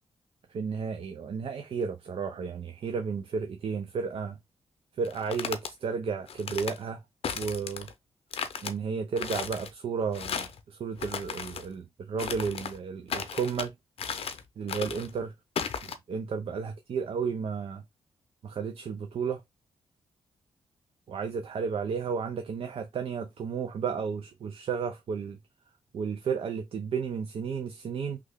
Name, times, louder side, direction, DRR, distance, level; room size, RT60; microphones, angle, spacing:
voice 1, 0.5-4.4 5.0-7.0 7.4-7.9 8.6-13.7 14.6-15.3 16.1-17.8 18.4-19.4 21.1-25.4 25.9-28.2, right 6 dB, 60° right, 0.5 m, -33 dB
sound 1, 5.0-5.7 6.3-6.8 7.2-7.9 8.3-8.7 9.2-9.7 10.1-10.6 11.0-11.6 12.2-12.8 13.1-13.7 14.0-14.4 14.7-15.1 15.6-15.9, left 7 dB, 65° left, 0.6 m, -35 dB
3.2 x 2.4 x 3.4 m
cardioid pair, 60°, 11 cm